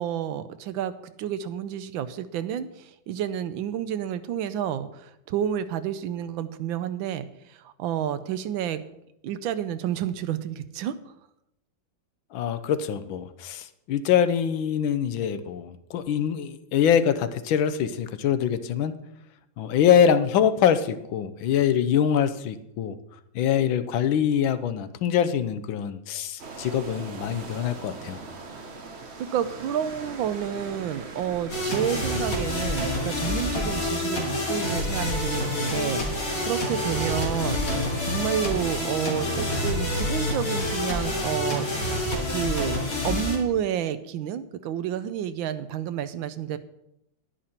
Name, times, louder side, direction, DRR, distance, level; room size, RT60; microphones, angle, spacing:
voice 1, 0.0-8.8 9.2-10.9 29.2-37.6 38.0-41.7 42.3-42.8 43.0-46.6, right 9 dB, 90° right, 12 dB, 1.4 m, -30 dB
voice 2, 12.3-18.9 19.6-23.0 23.3-28.2, left 8 dB, 85° left, 12 dB, 1.5 m, -24 dB
sound 1, 26.4-42.3, right 3 dB, 40° right, 1.2 m, -41 dB
sound 2, 31.5-43.4, left 1 dB, 45° left, 3.2 m, -27 dB
10.5 x 10.0 x 4.3 m, 0.82 s
omnidirectional pair, 2.1 m